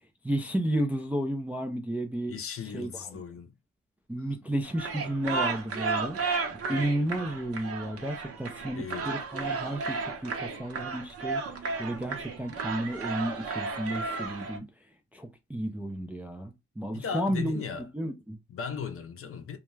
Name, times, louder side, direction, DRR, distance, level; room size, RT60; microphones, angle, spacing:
voice 1, 0.2-2.4 2.6-3.2 4.1-6.2 6.7-14.7 15.1-17.6 17.9-18.4, right 1 dB, 5° right, 0.3 m, -32 dB
voice 2, 2.3-3.5 8.8-9.1 16.9-17.9 18.5-19.6, left 6 dB, 50° left, 0.6 m, -37 dB
sound 1, 4.6-14.6, right 4 dB, 50° right, 0.7 m, -33 dB
2.3 x 2.1 x 3.0 m
cardioid pair, 90°, 30 cm